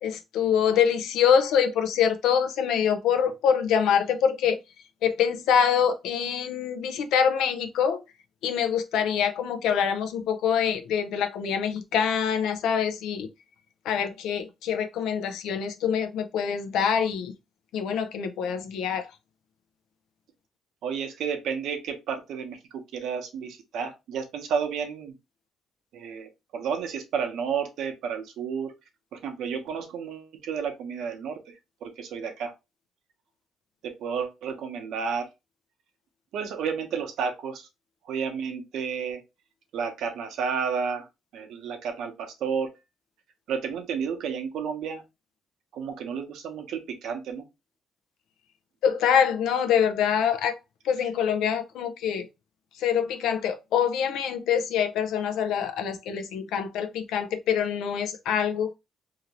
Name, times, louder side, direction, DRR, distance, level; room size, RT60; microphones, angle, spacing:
voice 1, 0.0-4.6 5.0-8.0 8.4-13.3 13.8-17.3 17.7-19.1 48.8-50.6 50.8-52.3 52.8-58.7, left 8 dB, 85° left, 0.5 m, -25 dB
voice 2, 20.8-22.6 22.9-25.1 25.9-28.7 29.1-31.4 31.8-32.5 33.8-35.3 36.3-37.7 38.0-39.2 39.7-41.1 41.3-42.7 43.5-45.0 45.7-47.4, right 6 dB, 80° right, 0.8 m, -31 dB
2.8 x 2.5 x 2.9 m
cardioid pair, 90°, 0 cm